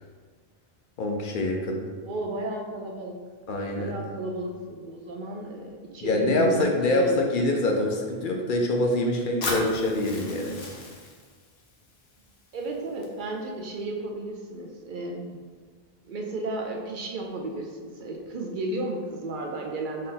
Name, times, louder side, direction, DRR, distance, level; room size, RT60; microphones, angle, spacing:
voice 1, 1.0-1.8 3.5-4.0 6.0-10.6, left 1 dB, 60° left, 1 dB, 0.7 m, -25 dB
voice 2, 2.0-3.2 3.6-7.3 12.5-15.4 16.1-20.1, right 1 dB, 60° right, 0 dB, 0.6 m, -33 dB
Fire, 9.4-13.4, left 2 dB, 85° left, 1.0 m, -37 dB
4.2 x 2.6 x 3.8 m, 1.6 s
omnidirectional pair, 1.0 m